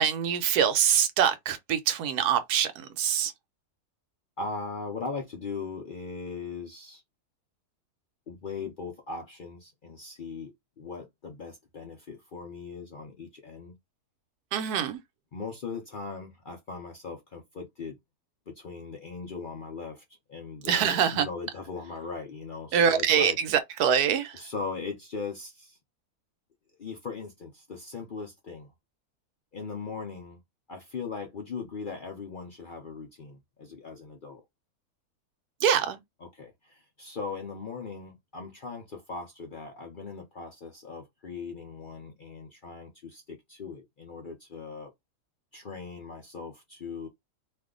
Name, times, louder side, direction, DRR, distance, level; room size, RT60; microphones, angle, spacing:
voice 1, 0.0-3.3 14.5-15.0 20.7-21.3 22.7-24.4 35.6-36.0, right 8 dB, 85° right, 1.1 m, -24 dB
voice 2, 4.4-7.0 8.3-10.5 10.8-13.7 15.3-18.0 18.5-20.0 20.3-23.4 24.3-25.8 26.8-28.7 29.5-30.4 30.7-34.4 36.3-44.9 45.5-47.1, left 4 dB, 55° left, 0.6 m, -39 dB
2.7 x 2.4 x 3.6 m
omnidirectional pair, 1.6 m